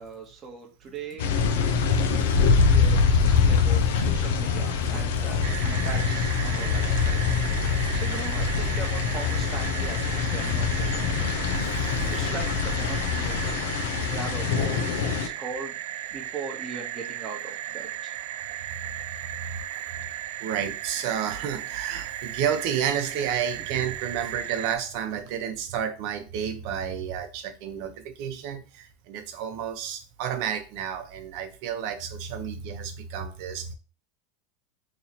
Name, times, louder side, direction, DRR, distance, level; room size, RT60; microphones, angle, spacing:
voice 1, 0.0-1.3 2.6-7.2 7.7-11.3 12.1-13.6 13.9-15.8 16.1-18.1, right 5 dB, 25° right, 0.9 m, -39 dB
sound 1, 1.2-15.3, left 5 dB, 85° left, 0.6 m, -24 dB
voice 2, 1.8-2.6 11.6-11.7 12.1-12.2 19.5-19.6 20.4-33.7, right 8 dB, 55° right, 0.8 m, -31 dB
sound 2, 5.4-24.8, right 12 dB, 70° right, 0.3 m, -36 dB
3.0 x 2.8 x 4.1 m
supercardioid pair, 150°, 0 cm